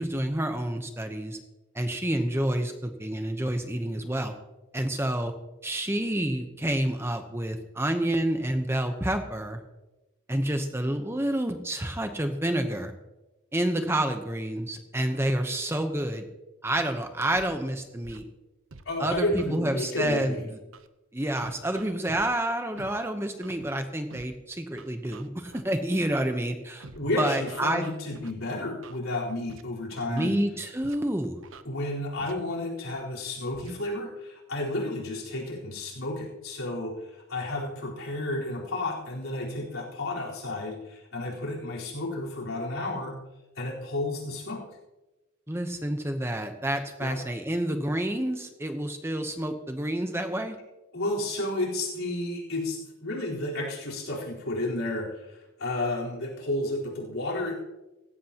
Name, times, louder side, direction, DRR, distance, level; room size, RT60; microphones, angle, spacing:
voice 1, 0.0-1.4 1.7-4.3 4.7-5.3 5.6-9.6 10.3-12.9 13.5-16.2 16.6-18.3 19.0-20.6 21.1-26.8 27.2-27.9 30.1-31.4 45.5-50.6, right 1 dB, 10° right, 6 dB, 0.9 m, -29 dB
Scratching (performance technique), 17.4-17.5 18.0-18.2 18.7-19.5 20.1-20.2 20.7-20.9 21.4-22.3 22.8-22.9 23.4-23.6 24.1-24.3 24.8-25.6 26.1-26.3 26.8-27.0 27.5-28.3 28.8-29.0 29.5-29.6 29.9-30.3 30.8-31.0 31.4-31.6 32.2-32.3 32.9-33.0 33.5-33.7, right 3 dB, 70° right, 0.9 m, -46 dB
voice 2, 18.9-20.4 26.9-30.4 31.6-43.2 43.6-44.7 47.0-47.2 50.9-57.6, left 1 dB, 85° left, -4 dB, 4.2 m, -32 dB
17.5 x 16.0 x 3.0 m, 1.0 s
head